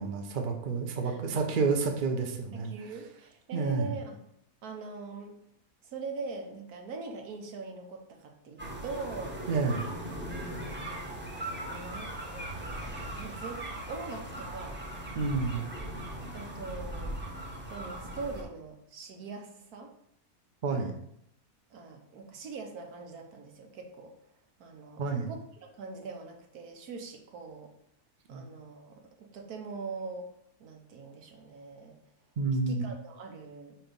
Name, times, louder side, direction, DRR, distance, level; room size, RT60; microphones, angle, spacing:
voice 1, 0.0-2.7 3.5-3.9 9.5-9.8 15.1-15.6 20.6-20.9 25.0-25.3 28.3-28.5 32.4-32.8, right 4 dB, 45° right, 3 dB, 0.8 m, -29 dB
voice 2, 1.0-1.6 2.5-4.2 4.6-5.4 5.8-9.4 10.3-11.0 11.6-13.6 13.9-14.8 16.3-19.9 21.7-24.1 24.6-25.0 25.3-25.4 25.8-27.7 28.3-30.3 30.6-32.0 32.7-33.8, right 4 dB, 80° right, 3 dB, 1.4 m, -42 dB
sound 1, 8.6-18.4, right 1 dB, 10° right, 0.8 m, -39 dB
4.4 x 4.4 x 5.3 m, 0.75 s
omnidirectional pair, 1.6 m